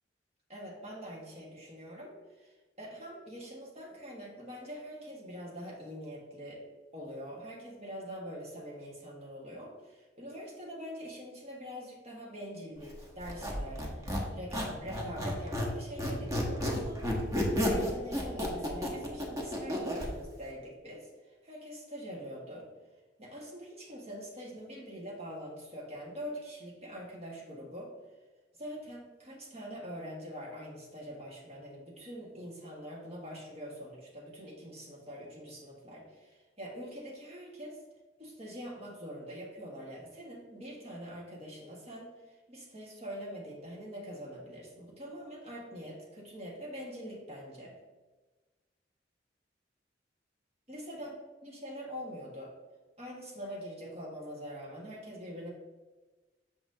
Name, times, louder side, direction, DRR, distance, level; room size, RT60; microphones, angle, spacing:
voice 1, 0.5-6.6 6.9-22.7 23.2-27.9 28.6-37.8 38.2-42.1 42.5-47.8 50.7-51.1 51.4-52.5 53.0-55.5, equal, 35° right, -3 dB, 1.6 m, -44 dB
Squeak, 13.2-15.7 16.0-20.1, left 1 dB, 20° right, 1.1 m, -32 dB
7.0 x 5.9 x 2.8 m, 1.2 s
head